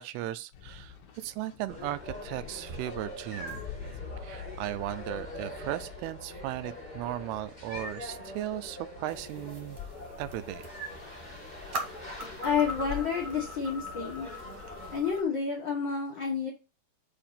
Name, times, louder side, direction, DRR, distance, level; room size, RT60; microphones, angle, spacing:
voice 1, 0.0-3.6 4.2-9.8 10.2-10.7, right 14 dB, 85° right, 2.6 m, -36 dB
sound 1, 0.5-8.5, left 6 dB, 70° left, 1.6 m, -48 dB
sound 2, 1.7-14.9, left 2 dB, 25° left, 0.9 m, -43 dB
sound 3, 9.1-15.2, left 1 dB, 60° right, 1.5 m, -42 dB
voice 2, 12.4-14.3 14.9-16.5, left 6 dB, 90° left, 1.0 m, -29 dB
6.8 x 2.8 x 5.6 m
omnidirectional pair, 4.5 m